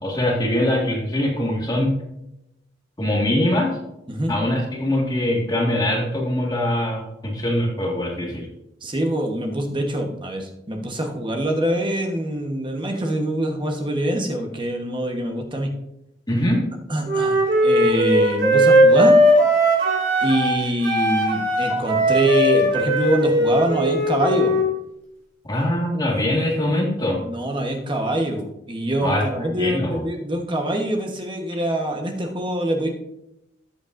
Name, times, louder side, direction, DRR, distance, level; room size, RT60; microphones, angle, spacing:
voice 1, 0.0-2.0 3.0-3.7 4.3-8.5 16.3-16.6 25.5-27.2 29.0-29.3 29.5-30.0, left 1 dB, 20° left, -2 dB, 1.8 m, -22 dB
voice 2, 8.8-15.7 16.9-19.2 20.2-24.5 27.2-32.9, right 1 dB, 25° right, 3 dB, 1.1 m, -24 dB
Wind instrument woodwind instrument, 17.0-20.6 20.8-24.7, equal, 65° right, 3.8 m, -18 dB
13.5 x 8.3 x 2.6 m, 0.87 s
head